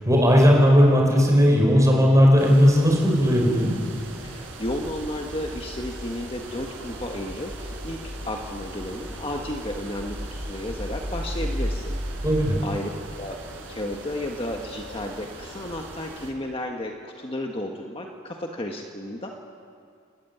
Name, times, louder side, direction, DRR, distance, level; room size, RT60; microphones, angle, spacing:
voice 1, 0.0-3.7 12.2-12.6, equal, 15° right, 0 dB, 5.6 m, -17 dB
sound 1, 2.4-16.3, right 2 dB, 75° right, 4.6 m, -41 dB
voice 2, 4.2-12.0 12.6-12.9 13.2-13.4 13.7-19.3, left 1 dB, 30° left, 2 dB, 1.5 m, -33 dB
sound 2, 4.4-12.6, equal, 15° left, 2.8 m, -35 dB
28.0 x 14.0 x 9.9 m, 2.2 s
head